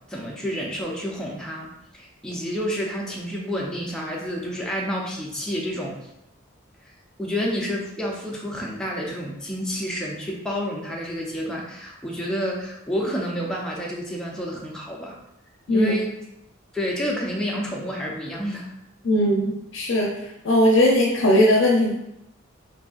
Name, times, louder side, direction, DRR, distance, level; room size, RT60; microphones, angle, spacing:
voice 1, 0.1-6.0 7.2-15.2 15.7-16.1 16.7-18.7, equal, 5° left, -3 dB, 0.6 m, -29 dB
voice 2, 19.0-20.1 20.4-21.9, left 1 dB, 65° left, -1 dB, 0.6 m, -18 dB
5.3 x 2.6 x 2.4 m, 0.82 s
head